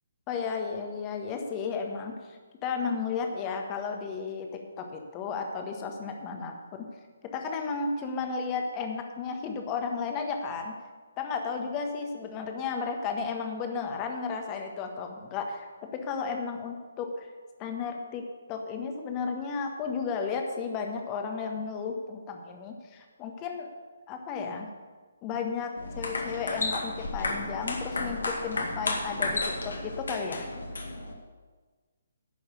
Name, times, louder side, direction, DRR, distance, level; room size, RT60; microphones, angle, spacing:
voice 1, 0.3-6.9 7.3-10.7 11.2-17.3 17.6-23.7 24.1-24.7 25.2-30.5, left 5 dB, 20° left, 4 dB, 1.5 m, -33 dB
sound 1, 25.8-31.1, left 2 dB, 60° left, 2.0 m, -33 dB
11.5 x 6.4 x 8.3 m, 1.4 s
figure-of-eight pair, 135°, 0 cm